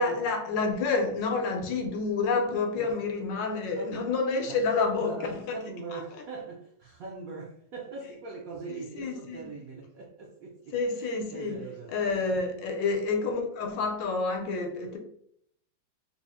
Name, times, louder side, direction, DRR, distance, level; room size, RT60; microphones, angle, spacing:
voice 1, 0.0-5.6 5.9-6.0 8.9-9.5 10.7-15.0, left 4 dB, 75° left, 1.3 m, -29 dB
voice 2, 4.4-11.9, right 4 dB, 75° right, 0.8 m, -41 dB
3.8 x 2.1 x 3.4 m
omnidirectional pair, 2.0 m